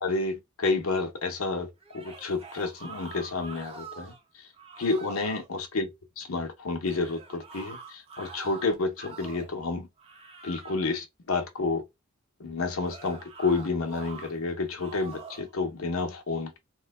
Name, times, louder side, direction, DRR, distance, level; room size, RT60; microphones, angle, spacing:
voice 1, 0.0-1.7 1.9-4.1 4.8-5.9 6.2-9.9 10.4-11.8 12.4-16.6, left 3 dB, 75° left, 0.8 m, -30 dB
sound 1, 1.8-4.2 4.5-5.5 6.8-9.6 10.0-10.9 12.8-14.3 14.8-15.5, right 4 dB, 30° right, 0.9 m, -45 dB
3.1 x 2.1 x 3.4 m
head